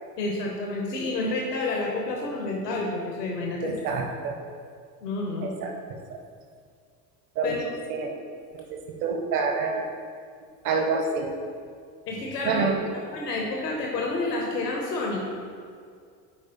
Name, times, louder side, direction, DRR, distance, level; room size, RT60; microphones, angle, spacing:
voice 1, 0.2-3.7 5.0-5.5 7.4-7.7 12.1-12.6 13.1-15.2, left 2 dB, 75° left, -1 dB, 1.0 m, -29 dB
voice 2, 3.6-4.3 5.4-5.7 7.4-7.5 7.9-8.1 8.5-8.6 9.0-9.8 10.6-11.3 12.4-12.8, right 4 dB, 45° right, 2 dB, 1.1 m, -27 dB
9.1 x 4.8 x 2.9 m, 2.2 s
figure-of-eight pair, 70°, 49 cm